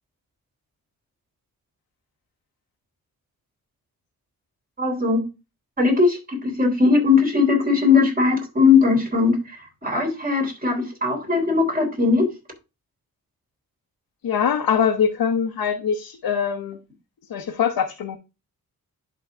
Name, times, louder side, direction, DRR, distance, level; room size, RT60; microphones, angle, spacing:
voice 1, 4.8-5.2 5.8-12.3, left 4 dB, 25° right, 3.4 m, -19 dB
voice 2, 14.2-16.8 17.3-18.2, left 7 dB, 90° left, 1.1 m, -23 dB
11.0 x 3.9 x 3.6 m
wide cardioid pair, 95°, 36 cm